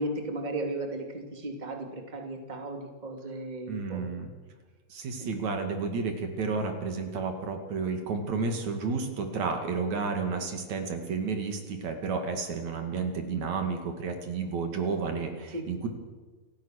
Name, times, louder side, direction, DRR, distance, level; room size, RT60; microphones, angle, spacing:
voice 1, 0.0-4.1 5.2-5.4 15.5-15.7, right 1 dB, 15° right, 3 dB, 2.6 m, -35 dB
voice 2, 3.7-4.3 4.9-15.9, right 4 dB, 70° right, 5 dB, 3.6 m, -31 dB
28.5 x 15.0 x 6.5 m, 1.4 s
omnidirectional pair, 3.4 m